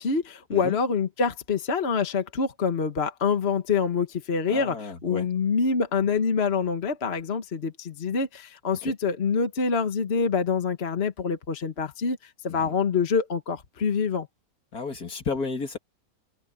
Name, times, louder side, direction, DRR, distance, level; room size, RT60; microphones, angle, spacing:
voice 1, 0.0-14.3, left 5 dB, 40° left, 1.6 m, -26 dB
voice 2, 4.5-5.3 8.8-8.9 12.5-12.7 14.7-15.8, left 4 dB, 70° left, 3.0 m, -32 dB
omnidirectional pair, 1.7 m